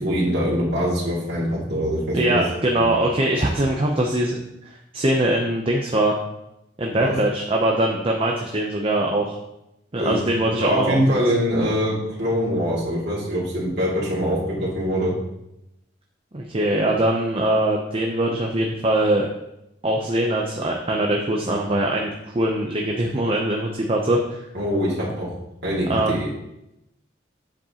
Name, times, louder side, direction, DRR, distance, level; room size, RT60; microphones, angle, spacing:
voice 1, 0.0-2.4 2.7-2.9 6.9-7.1 10.0-15.1 24.5-25.3 25.6-26.3, equal, 60° right, -7 dB, 2.2 m, -23 dB
voice 2, 2.1-4.4 4.6-6.1 6.8-9.4 9.9-11.2 16.3-19.3 19.8-24.4 25.9-26.2, right 1 dB, 30° right, 0 dB, 0.6 m, -22 dB
7.6 x 7.0 x 2.9 m, 0.87 s
head